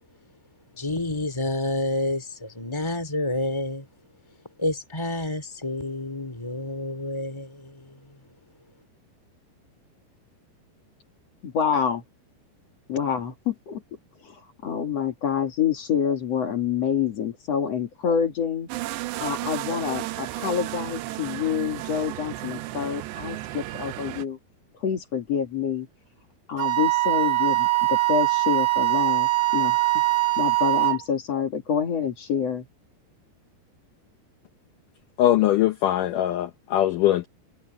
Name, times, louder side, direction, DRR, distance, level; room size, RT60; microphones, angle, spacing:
voice 1, 0.7-3.9 4.6-8.0, left 1 dB, 10° left, 1.8 m, -29 dB
voice 2, 11.4-12.0 12.9-13.8 14.2-18.7 19.2-24.4 24.8-25.9 26.5-29.8 30.4-32.7, left 7 dB, 45° left, 2.6 m, -27 dB
sound 1, 18.7-24.2, right 16 dB, 85° right, 3.0 m, -33 dB
Wind instrument woodwind instrument, 26.6-31.0, right 21 dB, 65° right, 2.0 m, -22 dB
voice 3, 35.2-37.3, left 12 dB, 90° left, 1.8 m, -21 dB
omnidirectional pair, 4.9 m